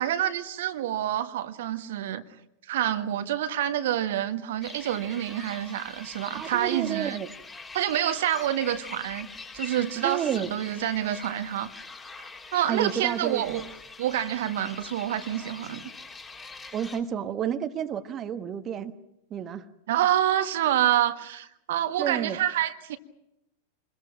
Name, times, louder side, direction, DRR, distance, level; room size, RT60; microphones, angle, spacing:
voice 1, 0.0-2.2 2.7-7.2 7.7-9.3 9.5-11.7 12.5-13.6 14.0-15.8 19.9-23.0, right 11 dB, 55° right, 1.5 m, -27 dB
sound 1, 4.6-17.0, left 3 dB, 15° left, 3.3 m, -43 dB
voice 2, 6.3-7.3 10.0-10.5 12.7-13.7 16.7-18.9 19.3-19.7 22.0-22.4, right 9 dB, 30° right, 1.3 m, -30 dB
27.0 x 21.5 x 5.9 m
figure-of-eight pair, 90°, 0 cm